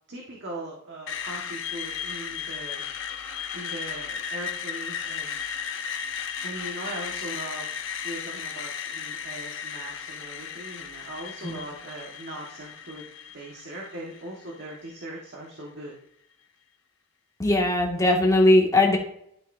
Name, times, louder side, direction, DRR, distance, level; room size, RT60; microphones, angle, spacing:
voice 1, 0.1-2.9 3.5-5.4 6.4-7.7 8.0-13.0 13.3-15.9, right 1 dB, 50° right, -2 dB, 1.6 m, -39 dB
Screech, 1.1-15.0, left 7 dB, 60° left, 0.9 m, -35 dB
voice 2, 17.4-19.0, left 1 dB, 15° left, -2 dB, 2.0 m, -19 dB
12.0 x 7.4 x 2.7 m, 0.72 s
head